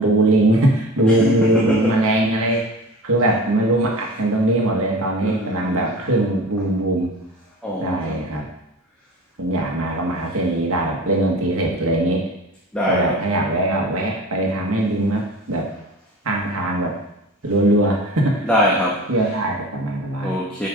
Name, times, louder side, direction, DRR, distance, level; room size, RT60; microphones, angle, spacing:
voice 1, 0.0-2.7 3.0-7.1 7.8-8.5 9.4-12.3 12.9-15.7 16.2-16.9 17.4-18.5 19.1-20.4, right 1 dB, 70° right, 0 dB, 1.5 m, -20 dB
voice 2, 1.1-2.0 2.5-2.6 5.2-6.0 7.6-8.3 12.7-13.2 18.4-19.3 20.2-20.7, equal, 5° left, -6 dB, 1.2 m, -23 dB
8.3 x 5.1 x 5.1 m, 0.80 s
head